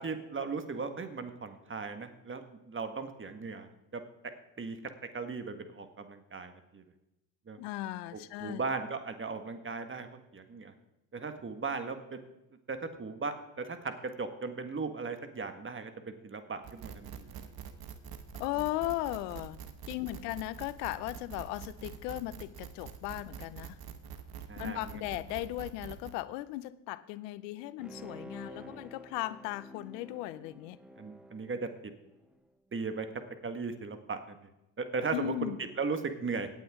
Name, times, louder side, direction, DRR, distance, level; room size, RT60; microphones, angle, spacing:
voice 1, 0.0-2.4 2.7-4.0 4.6-4.8 5.1-6.8 7.5-7.6 8.1-10.7 11.1-12.2 12.7-17.5 24.5-25.0 28.4-28.8 31.0-31.7 32.7-33.1 33.4-34.5 34.8-36.5, right 4 dB, 25° right, 8 dB, 1.7 m, -37 dB
voice 2, 7.6-8.6 18.4-19.6 19.9-23.8 24.6-30.8 35.1-35.6, left 17 dB, 75° left, 16 dB, 0.7 m, -37 dB
sound 1, 16.6-26.1, right 8 dB, 45° right, 1.4 m, -45 dB
Bowed string instrument, 27.8-32.4 32.8-32.9, right 1 dB, ahead, 1.1 m, -50 dB
17.0 x 9.3 x 3.7 m, 0.91 s
hypercardioid pair, 75°, 49 cm